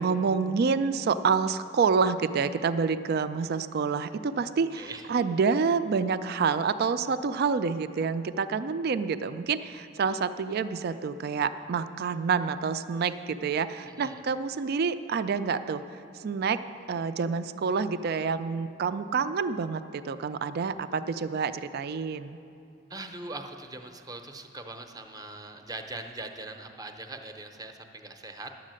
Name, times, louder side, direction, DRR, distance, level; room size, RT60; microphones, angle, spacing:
voice 1, 0.0-15.8 16.2-16.6 16.9-22.4, right 5 dB, 55° right, 12 dB, 0.4 m, -28 dB
voice 2, 13.9-14.2 22.9-28.5, right 2 dB, 20° right, 5 dB, 0.7 m, -41 dB
11.0 x 7.4 x 7.6 m, 2.6 s
head